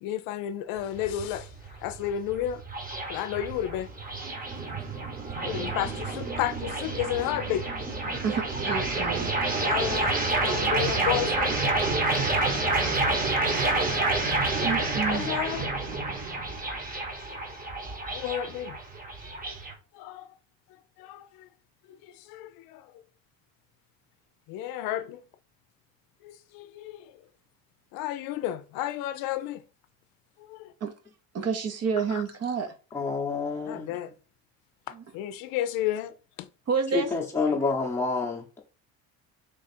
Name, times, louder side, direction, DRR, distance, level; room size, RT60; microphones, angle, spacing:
voice 1, 0.0-1.5 1.8-2.6 3.1-3.9 5.4-7.7 9.6-10.1 10.4-11.8 12.8-14.0 15.1-15.7 16.3-17.0 17.3-17.4 18.1-18.8 19.4-19.6 19.9-20.3 21.0-21.5 21.9-22.9 24.5-25.2 26.2-27.2 27.9-29.6 30.4-30.7 32.1-32.2 33.7-34.1 34.9-36.5, left 12 dB, 80° left, 0.5 m, -33 dB
sound 1, 0.8-19.7, right 2 dB, 25° right, 1.1 m, -29 dB
voice 2, 8.2-9.3 14.6-15.3 30.8-30.9 31.3-32.7 34.9-35.0 36.7-37.1, right 5 dB, 45° right, 0.9 m, -29 dB
voice 3, 32.9-33.9 36.9-38.6, left 4 dB, 5° left, 0.8 m, -28 dB
3.4 x 2.4 x 4.2 m
cardioid pair, 90°, 34 cm